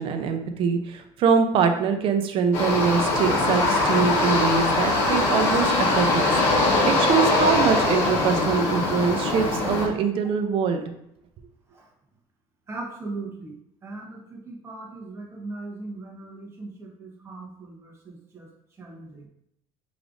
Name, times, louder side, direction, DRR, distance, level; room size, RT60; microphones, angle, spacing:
voice 1, 0.0-6.3 6.8-10.8, right 6 dB, 50° right, 6 dB, 0.5 m, -23 dB
sound 1, 2.5-9.9, left 2 dB, 70° left, 1.2 m, -22 dB
voice 2, 12.7-13.6 13.8-18.5 18.8-19.3, right 2 dB, 25° right, -1 dB, 1.1 m, -39 dB
4.9 x 3.2 x 2.5 m, 0.76 s
cardioid pair, 120°, 12 cm